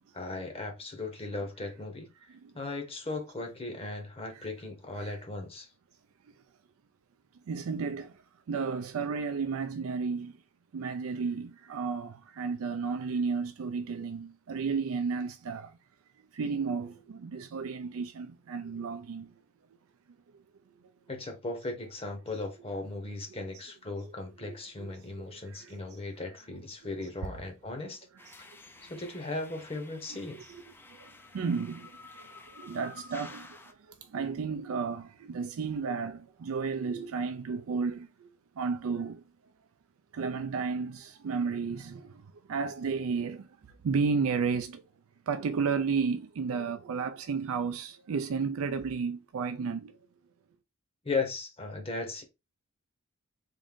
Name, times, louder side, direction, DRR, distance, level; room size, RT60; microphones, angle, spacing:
voice 1, 0.1-2.1 2.5-5.7 21.1-28.1 28.8-30.4 51.0-52.2, left 3 dB, 25° left, 0.9 m, -37 dB
voice 2, 2.3-2.6 4.3-4.5 5.0-5.2 7.5-10.4 10.7-15.8 16.3-19.3 24.0-24.1 24.4-25.8 27.0-27.1 28.2-28.4 30.1-30.6 30.9-38.3 38.6-39.2 40.1-44.8 45.3-50.0, right 5 dB, 70° right, 0.4 m, -33 dB
sound 1, 28.2-33.7, left 3 dB, 10° left, 0.4 m, -51 dB
3.7 x 2.6 x 3.5 m
head